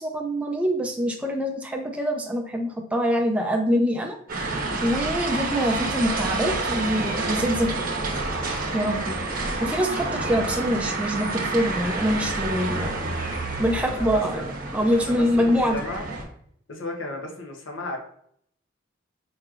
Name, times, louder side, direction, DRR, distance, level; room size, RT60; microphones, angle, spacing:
voice 1, 0.0-4.2 4.8-7.9 8.7-9.2 9.6-13.0 13.6-14.4 14.7-15.9, equal, 5° right, 2 dB, 0.3 m, -24 dB
sound 1, 4.3-16.2, right 3 dB, 45° right, 0.8 m, -29 dB
voice 2, 13.8-14.5 14.9-16.1 16.7-18.0, left 1 dB, 70° left, 2 dB, 0.8 m, -34 dB
4.6 x 3.0 x 2.4 m, 0.65 s
head